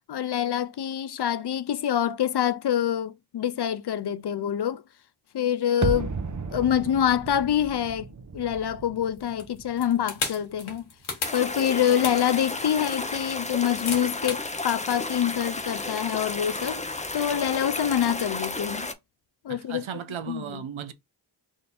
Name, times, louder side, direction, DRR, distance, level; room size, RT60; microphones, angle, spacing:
voice 1, 0.1-4.8 5.3-6.2 6.5-8.1 8.3-10.8 11.3-16.8 17.1-18.9 19.4-19.8 20.3-20.6, left 10 dB, 55° left, 0.5 m, -26 dB
sound 1, 5.8-10.8 11.0-11.1, right 4 dB, 40° right, 0.8 m, -34 dB
sound 2, 9.2-14.5, left 4 dB, 85° left, 1.5 m, -34 dB
sound 3, 11.2-18.9, left 2 dB, 15° left, 0.7 m, -33 dB
voice 2, 19.5-20.9, right 8 dB, 80° right, 0.7 m, -36 dB
3.6 x 2.7 x 4.2 m
cardioid pair, 50°, 47 cm